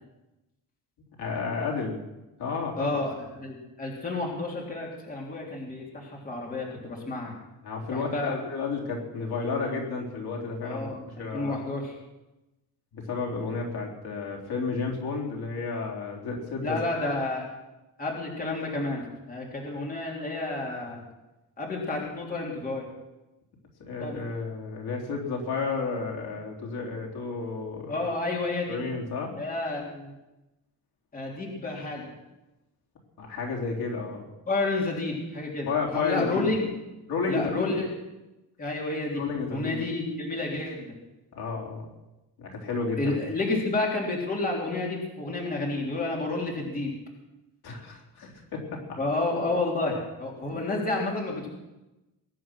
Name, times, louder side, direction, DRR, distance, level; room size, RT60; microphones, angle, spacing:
voice 1, 1.2-2.0 2.4-3.0 7.6-10.9 11.2-11.6 12.9-16.8 23.8-28.1 28.7-29.3 33.2-34.3 35.7-36.5 37.1-37.8 39.1-39.8 41.3-41.9 42.4-43.2 47.6-48.8, left 4 dB, 65° left, -1 dB, 3.9 m, -32 dB
voice 2, 2.8-7.4 7.9-8.4 10.6-11.9 16.6-17.5 18.0-21.0 21.6-22.9 24.0-24.2 27.9-28.8 29.4-30.1 31.1-32.1 34.5-36.7 37.3-37.9 38.6-39.2 39.5-40.9 43.0-46.9 49.0-51.5, left 2 dB, 20° left, -2 dB, 3.4 m, -30 dB
21.5 x 11.0 x 6.2 m, 1.0 s
cardioid pair, 165°, 40 cm